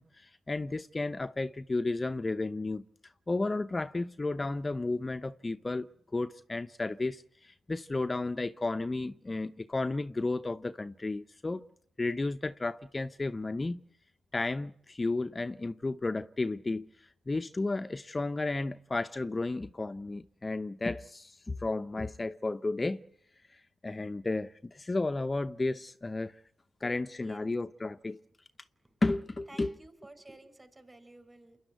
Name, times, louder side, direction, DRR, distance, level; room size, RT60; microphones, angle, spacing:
voice 1, 0.0-11.7 12.0-13.8 14.3-23.0 23.5-26.4 26.8-28.2 29.0-29.7, left 2 dB, 30° left, 0.8 m, -33 dB
voice 2, 29.5-31.6, right 2 dB, 15° right, 5.1 m, -53 dB
28.5 x 11.0 x 9.2 m
hypercardioid pair, 45°, 0 cm